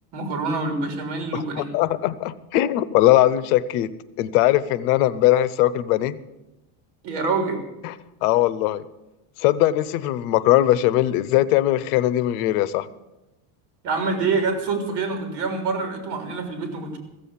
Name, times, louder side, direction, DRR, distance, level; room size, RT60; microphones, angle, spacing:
voice 1, 0.1-1.7 7.0-7.6 13.8-17.0, right 4 dB, 65° right, 5 dB, 3.5 m, -26 dB
voice 2, 1.3-3.9 4.2-6.2 7.8-7.9 8.2-8.8 9.4-12.9, left 14 dB, 85° left, 17 dB, 0.9 m, -20 dB
15.0 x 7.7 x 8.5 m, 0.97 s
cardioid pair, 165°, 44 cm